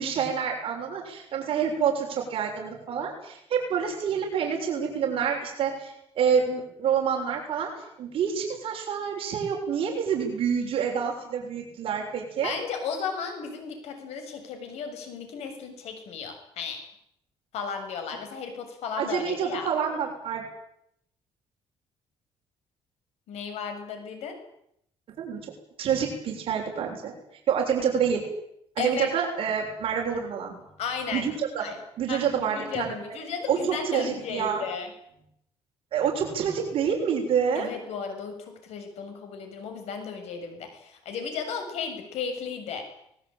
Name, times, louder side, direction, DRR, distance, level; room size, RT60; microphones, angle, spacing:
voice 1, 0.0-12.6 19.0-20.4 25.2-25.5 25.8-27.1 27.5-28.2 28.8-30.5 31.1-31.7 32.0-32.9 33.5-34.7 35.9-37.7, right 7 dB, 55° right, 1 dB, 6.9 m, -27 dB
voice 2, 12.4-16.8 17.5-19.7 23.3-24.4 28.8-29.1 30.8-31.3 31.6-31.8 32.1-34.9 37.5-42.9, left 6 dB, 80° left, 6 dB, 7.3 m, -34 dB
24.5 x 21.0 x 9.2 m, 0.73 s
cardioid pair, 150°, 11 cm